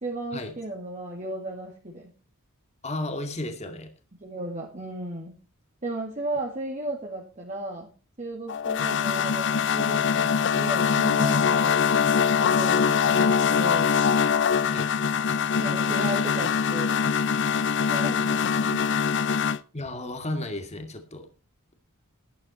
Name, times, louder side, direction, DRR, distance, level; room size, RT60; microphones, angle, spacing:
voice 1, 0.0-2.1 4.2-5.3 5.8-7.9 8.2-11.8 12.4-14.0 15.6-17.0 17.9-19.0, right 2 dB, 35° right, -1 dB, 2.2 m, -35 dB
voice 2, 2.8-3.9 14.7-14.9 19.7-21.3, left 2 dB, 30° left, 6 dB, 2.2 m, -33 dB
sound 1, 8.5-19.6, left 6 dB, 55° left, 0.6 m, -23 dB
13.0 x 12.5 x 4.3 m, 0.33 s
head